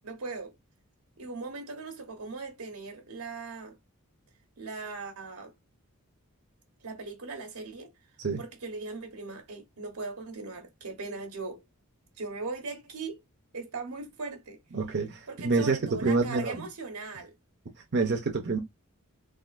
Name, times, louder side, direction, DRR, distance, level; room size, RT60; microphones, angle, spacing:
voice 1, 0.0-0.6 1.2-3.8 4.6-5.5 6.8-7.9 8.4-11.6 12.2-13.2 13.5-14.6 15.3-17.3, right 3 dB, 85° right, 1.1 m, -39 dB
voice 2, 14.7-16.7 17.9-18.6, right 3 dB, 50° right, 0.6 m, -27 dB
3.7 x 2.4 x 2.4 m
head